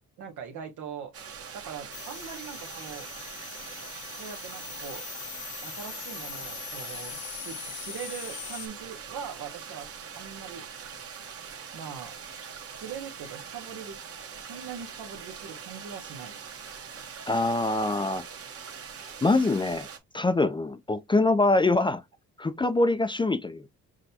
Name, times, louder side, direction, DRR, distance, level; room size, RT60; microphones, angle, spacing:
voice 1, 0.2-1.1 1.5-3.1 4.1-5.1 5.6-9.9 10.1-10.6 11.7-12.2 12.7-14.0 14.4-16.4, right 7 dB, 75° right, 0.9 m, -41 dB
sound 1, 1.1-20.0, right 7 dB, 50° right, 1.2 m, -43 dB
sound 2, 1.9-8.7, left 10 dB, 85° left, 1.0 m, -41 dB
voice 2, 17.3-18.2 19.2-19.9 20.1-22.0 22.4-23.7, left 2 dB, 15° left, 0.4 m, -24 dB
6.1 x 2.2 x 2.8 m
cardioid pair, 90°, 30 cm